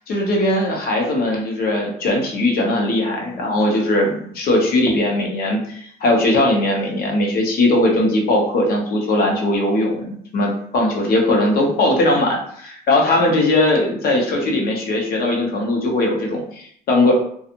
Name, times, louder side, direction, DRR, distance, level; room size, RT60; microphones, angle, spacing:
voice 1, 0.1-17.1, left 1 dB, 65° left, 0 dB, 0.8 m, -19 dB
2.5 x 2.4 x 2.8 m, 0.64 s
cardioid pair, 110°, 17 cm